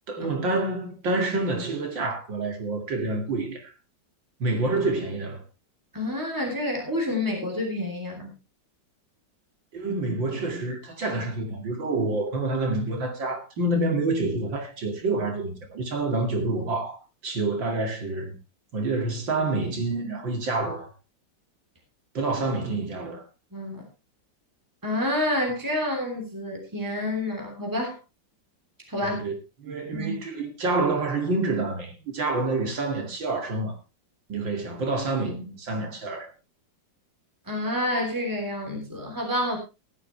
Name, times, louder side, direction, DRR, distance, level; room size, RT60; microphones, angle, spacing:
voice 1, 0.1-3.7 4.4-5.4 9.7-18.3 18.7-20.9 22.1-23.2 29.0-29.3 29.6-33.8 34.3-36.3, right 2 dB, 80° right, 3.0 m, -28 dB
voice 2, 5.9-8.3 23.5-23.8 24.8-28.0 28.9-29.2 29.9-30.2 37.5-39.6, left 1 dB, 10° right, 3.2 m, -28 dB
16.0 x 11.5 x 3.2 m
omnidirectional pair, 2.0 m